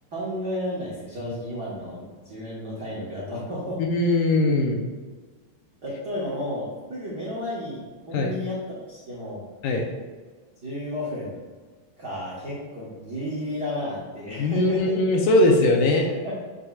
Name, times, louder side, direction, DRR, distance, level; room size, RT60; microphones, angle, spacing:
voice 1, 0.1-3.8 5.8-9.4 10.6-11.4 12.0-14.9 16.2-16.3, left 1 dB, 80° right, -7 dB, 0.9 m, -32 dB
voice 2, 3.8-4.9 8.1-8.3 9.6-9.9 14.4-16.1, left 2 dB, 75° left, 1 dB, 2.0 m, -20 dB
7.2 x 6.3 x 2.4 m, 1.4 s
omnidirectional pair, 4.0 m